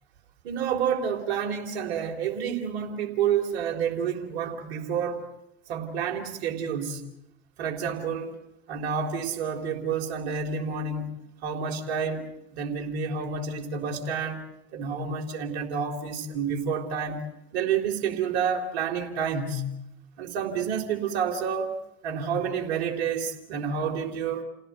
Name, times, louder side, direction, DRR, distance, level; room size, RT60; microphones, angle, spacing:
voice 1, 0.4-5.3 5.7-7.0 7.6-8.4 8.7-11.1 11.4-14.4 14.7-17.2 17.5-19.7 20.2-21.8 22.0-24.4, right 6 dB, 65° right, 2 dB, 3.9 m, -29 dB
29.0 x 17.5 x 9.0 m, 0.83 s
hypercardioid pair, 90°, 32 cm